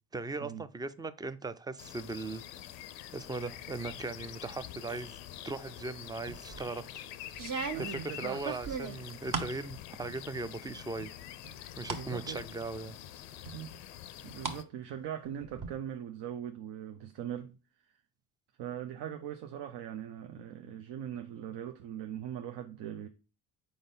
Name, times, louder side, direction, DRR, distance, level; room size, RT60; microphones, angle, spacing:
voice 1, 0.1-2.4 3.1-5.2 5.4-6.8 7.8-11.1 11.8-13.0, right 3 dB, 10° right, 0.4 m, -38 dB
sound 1, 1.8-14.6, left 12 dB, 80° left, 0.6 m, -46 dB
sound 2, 6.3-6.7 7.3-9.6 10.0-10.6 11.0-12.1 12.5-12.6 13.5-14.6 14.9-15.7, right 5 dB, 45° right, 1.0 m, -38 dB
voice 2, 7.7-8.4 11.9-12.4 13.5-13.7 14.2-17.6 17.9-18.0 18.6-23.1, right 10 dB, 60° right, 0.7 m, -41 dB
4.4 x 4.0 x 5.3 m
hypercardioid pair, 55°, 47 cm